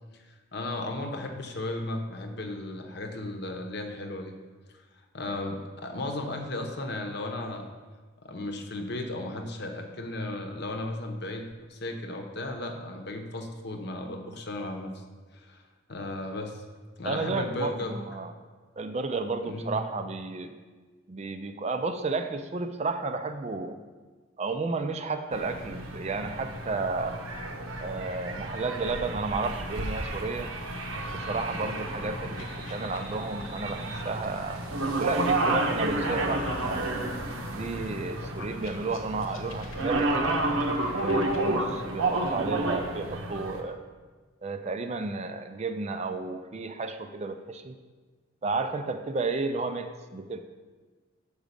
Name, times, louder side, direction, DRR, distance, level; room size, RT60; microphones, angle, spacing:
voice 1, 0.1-4.3 4.7-4.8 5.1-7.7 8.2-14.9 15.3-15.6 15.9-16.6 17.0-18.0 19.4-19.8, left 2 dB, 50° left, 4 dB, 0.8 m, -35 dB
voice 2, 17.0-18.3 18.8-20.6 21.1-23.8 24.4-27.2 27.8-30.5 31.1-34.6 35.0-37.0 37.5-40.4 40.9-43.8 44.4-47.8 48.4-50.4, right 3 dB, 30° right, 8 dB, 0.4 m, -32 dB
sound 1, 25.3-43.6, right 2 dB, 90° right, 1.0 m, -31 dB
sound 2, 30.5-34.8 35.4-41.4, left 2 dB, 85° left, 1.1 m, -46 dB
7.1 x 5.0 x 6.6 m, 1.4 s
head